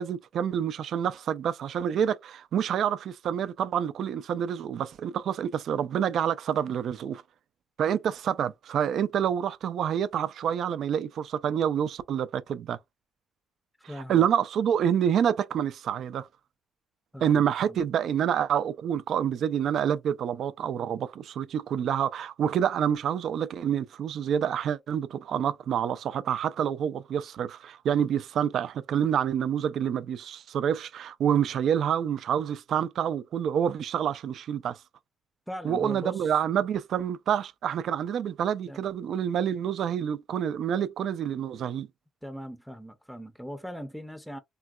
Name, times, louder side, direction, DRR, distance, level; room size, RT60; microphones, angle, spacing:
voice 1, 0.0-7.2 7.8-12.8 14.1-16.3 17.2-34.8 35.6-41.9, right 9 dB, 70° right, 0.3 m, -27 dB
voice 2, 13.8-14.3 17.1-17.8 35.5-36.3 38.7-38.8 42.2-44.4, equal, ahead, 0.5 m, -40 dB
3.7 x 2.2 x 2.3 m
cardioid pair, 90°, 0 cm